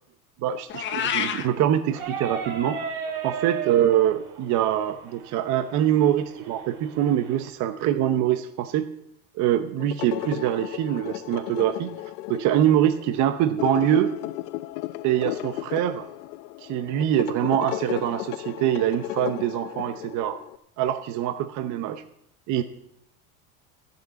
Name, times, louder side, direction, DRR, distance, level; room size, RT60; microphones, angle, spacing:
voice 1, 0.4-2.8 3.2-8.9 9.3-11.9 12.3-14.1 15.0-16.1 16.6-20.4 20.8-22.0 22.5-22.6, right 11 dB, 40° right, 8 dB, 0.9 m, -24 dB
Meow, 0.7-1.5, left 9 dB, 25° left, 0.9 m, -27 dB
sound 1, 1.9-7.5, right 6 dB, 90° right, 2.7 m, -35 dB
sound 2, 9.8-20.6, left 16 dB, 85° left, 0.7 m, -35 dB
14.0 x 6.7 x 8.2 m, 0.79 s
supercardioid pair, 140°, 44 cm